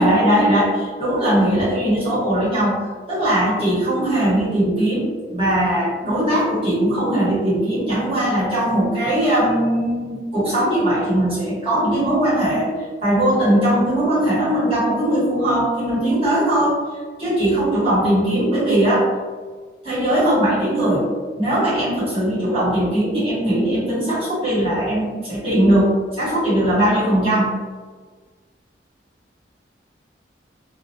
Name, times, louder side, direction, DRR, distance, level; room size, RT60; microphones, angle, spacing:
voice 1, 0.0-12.7 13.0-16.8 17.2-19.1 19.8-21.1 21.4-27.5, right 1 dB, 35° right, -10 dB, 1.2 m, -19 dB
2.5 x 2.1 x 2.7 m, 1.4 s
head